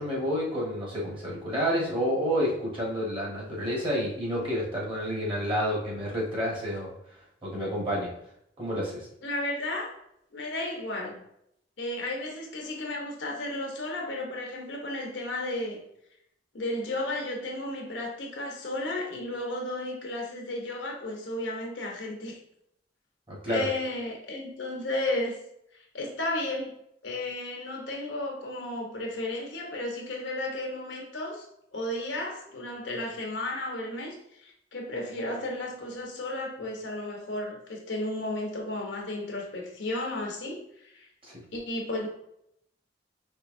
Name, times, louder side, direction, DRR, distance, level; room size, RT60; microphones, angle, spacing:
voice 1, 0.0-6.9 7.4-8.1 8.6-9.1 23.3-23.7 41.2-41.4, equal, 30° right, -4 dB, 1.3 m, -29 dB
voice 2, 9.2-9.9 10.3-11.2 11.8-15.8 16.5-22.4 23.5-25.4 25.7-26.7 27.0-31.5 31.7-41.1 41.5-42.1, left 1 dB, 75° left, 1 dB, 0.8 m, -33 dB
4.4 x 2.8 x 2.6 m, 0.74 s
head